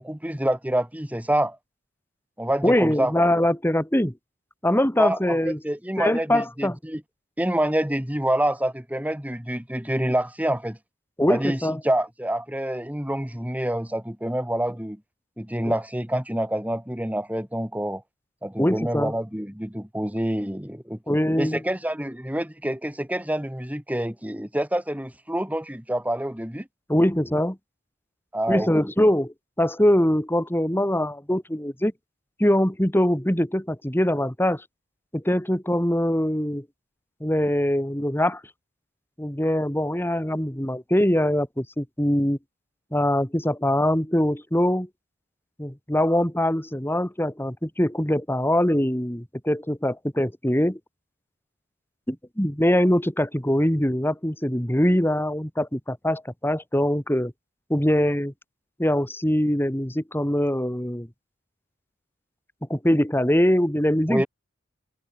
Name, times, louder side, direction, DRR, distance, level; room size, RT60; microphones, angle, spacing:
voice 1, 0.0-1.6 2.4-3.3 5.0-7.0 7.4-10.8 11.3-15.0 15.4-18.0 18.4-26.7 28.3-28.9 64.1-64.3, right 1 dB, 10° right, 2.7 m, -27 dB
voice 2, 2.6-4.1 4.6-5.6 6.0-6.8 11.2-11.8 15.7-15.8 18.6-19.1 21.1-21.6 26.9-27.6 28.5-31.9 32.4-34.6 35.1-36.6 37.2-38.4 39.2-42.4 42.9-44.9 45.6-50.8 52.1-57.3 57.7-58.3 58.8-61.1 62.7-64.3, left 1 dB, 10° left, 2.9 m, -23 dB
head